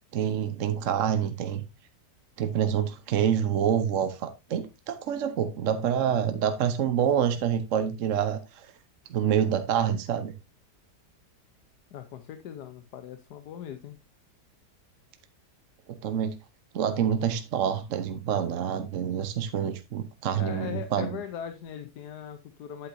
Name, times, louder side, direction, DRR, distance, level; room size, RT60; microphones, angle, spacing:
voice 1, 0.1-1.6 2.4-8.7 9.1-10.3 15.9-16.3 16.7-21.1, right 9 dB, 55° right, 1.0 m, -27 dB
voice 2, 11.9-14.0 20.3-22.9, left 9 dB, 75° left, 1.3 m, -39 dB
8.4 x 8.2 x 2.6 m
omnidirectional pair, 1.8 m